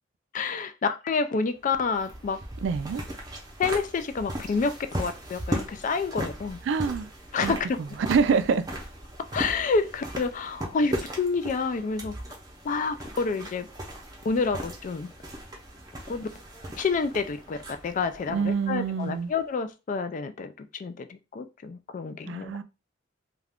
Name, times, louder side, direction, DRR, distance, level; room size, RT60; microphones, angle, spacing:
voice 1, 0.3-2.4 3.6-6.6 7.3-7.8 9.3-12.1 12.6-13.7 14.2-15.1 16.1-16.3 16.8-17.6 17.8-22.6, left 4 dB, 40° left, 0.3 m, -28 dB
sound 1, 1.6-19.3, right 1 dB, 20° right, 0.6 m, -38 dB
voice 2, 2.6-3.0 6.7-7.1 7.4-7.5 8.1-8.7 18.3-19.3 22.3-22.6, right 5 dB, 65° right, 0.3 m, -25 dB
2.4 x 2.3 x 3.4 m
head